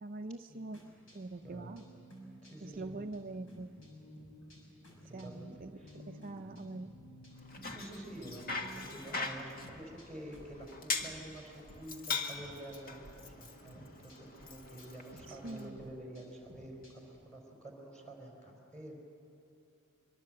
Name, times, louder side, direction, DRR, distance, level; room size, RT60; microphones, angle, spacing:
voice 1, 0.0-1.9 2.6-3.7 5.1-6.9 15.3-15.9, right 2 dB, 40° right, 7 dB, 0.6 m, -44 dB
sound 1, 0.7-11.8 12.0-13.1 13.4-17.2, equal, 70° left, 6.2 m, -55 dB
voice 2, 1.4-1.7 2.4-3.0 5.0-5.9 7.6-18.9, right 1 dB, 5° left, -2 dB, 4.5 m, -49 dB
Bicycle, 7.4-15.7, left 4 dB, 45° left, 1.7 m, -42 dB
24.0 x 24.0 x 7.8 m, 2.7 s
head